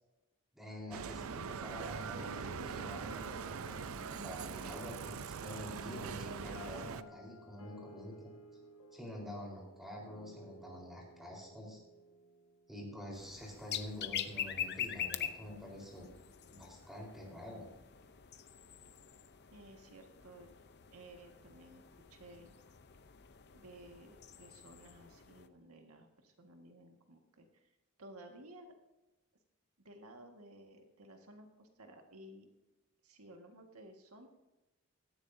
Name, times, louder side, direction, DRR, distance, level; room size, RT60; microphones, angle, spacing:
voice 1, 0.5-8.3 8.9-11.8 12.7-16.1 16.5-17.7, left 1 dB, ahead, -3 dB, 4.1 m, -47 dB
Bicycle, 0.9-7.0, right 6 dB, 70° right, 0.5 m, -42 dB
sound 1, 2.1-13.3, equal, 75° left, 1.3 m, -56 dB
sound 2, 13.1-25.5, left 9 dB, 50° left, 0.7 m, -45 dB
voice 2, 19.5-20.5 20.9-21.8 22.1-22.5 23.5-27.7 28.0-28.8 29.8-32.5 33.0-34.3, right 1 dB, 90° right, 3 dB, 1.7 m, -55 dB
17.0 x 13.5 x 2.7 m, 1.0 s
head